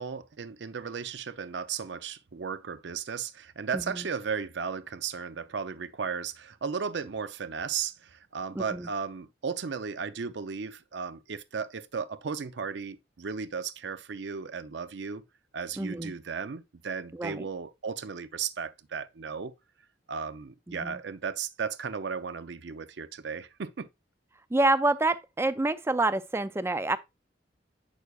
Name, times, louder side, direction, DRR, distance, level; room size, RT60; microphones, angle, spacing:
voice 1, 0.0-15.3 15.5-19.5 20.1-23.9, right 6 dB, 70° right, 0.5 m, -35 dB
voice 2, 3.7-4.1 8.5-8.9 15.8-16.1 17.1-17.4 20.7-21.0 24.5-27.0, right 2 dB, 15° right, 0.4 m, -27 dB
8.1 x 6.3 x 2.3 m
head